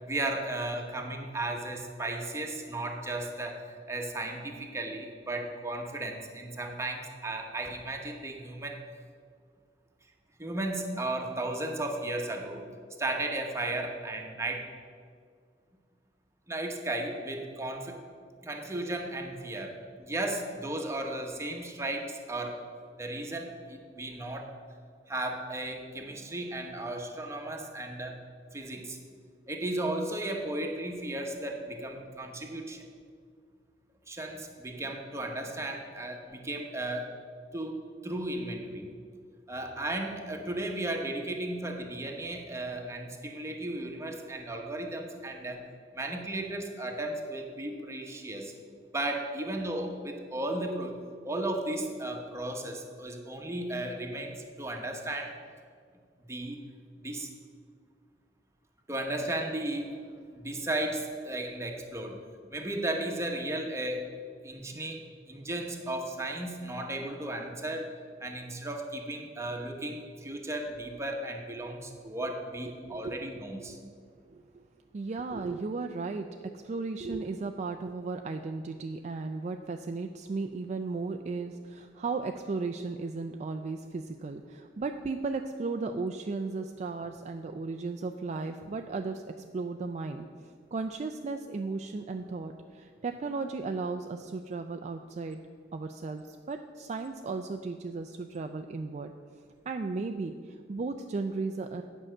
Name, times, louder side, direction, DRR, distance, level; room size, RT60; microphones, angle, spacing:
voice 1, 0.1-8.8 10.4-12.6 13.0-14.7 16.5-18.0 18.4-22.6 23.0-24.5 25.1-28.2 28.5-29.0 29.5-32.8 34.1-37.2 37.5-38.9 39.5-45.6 45.9-48.5 48.9-51.0 51.2-55.4 56.3-56.6 57.0-57.3 58.9-60.0 60.3-62.2 62.5-64.1 64.4-65.0 65.3-67.9 68.2-73.8, right 1 dB, 15° right, 2 dB, 1.0 m, -35 dB
voice 2, 74.3-74.6 74.9-95.4 95.7-99.1 99.7-101.8, right 3 dB, 40° right, 5 dB, 0.4 m, -35 dB
8.9 x 5.6 x 7.6 m, 2.1 s
head